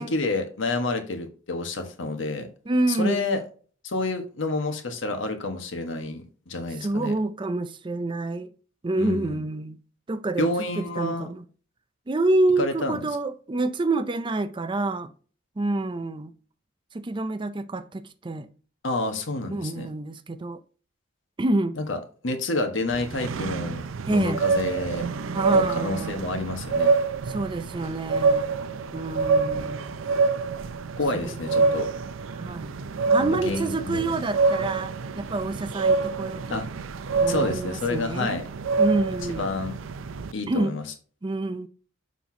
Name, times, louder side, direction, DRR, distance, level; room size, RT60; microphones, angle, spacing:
voice 1, 0.0-2.5 2.9-3.4 3.8-7.1 9.0-9.4 10.4-11.3 12.6-13.0 18.8-19.9 21.8-22.0 22.2-25.1 25.5-26.9 31.0-31.9 33.2-34.1 36.5-36.7 37.3-38.4 39.4-39.8 40.3-40.8, left 2 dB, 70° left, 1.4 m, -29 dB
voice 2, 2.7-3.2 6.8-8.5 8.8-9.8 10.1-10.5 10.8-11.4 12.1-15.1 15.6-16.3 16.9-18.5 19.5-20.6 21.4-21.8 24.0-24.4 25.3-26.4 27.3-28.5 28.9-30.0 31.1-31.7 32.3-32.7 33.1-36.6 37.2-38.4 38.8-39.5 40.5-40.7 41.2-41.7, right 2 dB, 25° right, 0.4 m, -27 dB
sound 1, 22.9-40.3, right 4 dB, 80° right, 0.5 m, -26 dB
6.9 x 5.9 x 2.8 m
head